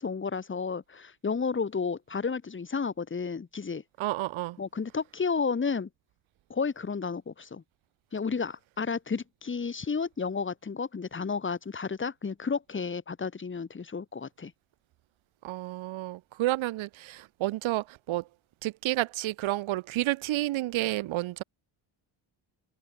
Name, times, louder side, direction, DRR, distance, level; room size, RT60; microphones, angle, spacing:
voice 1, 0.0-3.8 4.6-5.9 6.5-7.6 8.1-14.5, left 5 dB, 25° left, 3.4 m, -32 dB
voice 2, 4.0-4.6 15.4-18.3 18.6-21.4, right 16 dB, 90° right, 2.1 m, -30 dB
cardioid pair, 145°, 46 cm